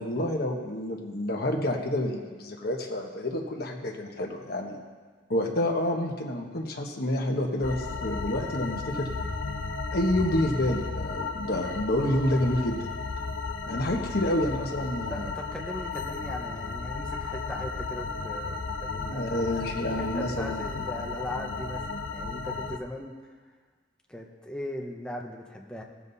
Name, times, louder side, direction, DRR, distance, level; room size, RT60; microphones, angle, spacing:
voice 1, 0.0-4.8 5.3-9.1 9.9-12.9 13.7-15.3 19.1-20.6, left 1 dB, 55° left, 1 dB, 1.4 m, -28 dB
sound 1, 7.6-22.8, left 4 dB, 75° left, 0.7 m, -34 dB
voice 2, 15.1-19.6 20.0-23.1 24.1-25.8, left 1 dB, 5° left, 0 dB, 1.0 m, -39 dB
17.5 x 7.4 x 4.1 m, 1.5 s
head